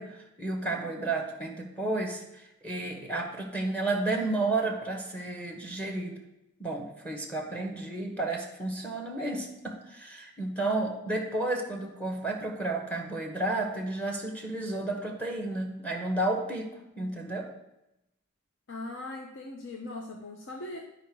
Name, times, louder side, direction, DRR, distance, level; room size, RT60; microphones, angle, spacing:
voice 1, 0.0-6.1 6.6-16.7 17.0-17.5, right 2 dB, 5° left, 2 dB, 1.0 m, -32 dB
voice 2, 18.7-20.8, left 2 dB, 55° left, 1 dB, 0.8 m, -39 dB
10.0 x 5.0 x 4.6 m, 0.88 s
head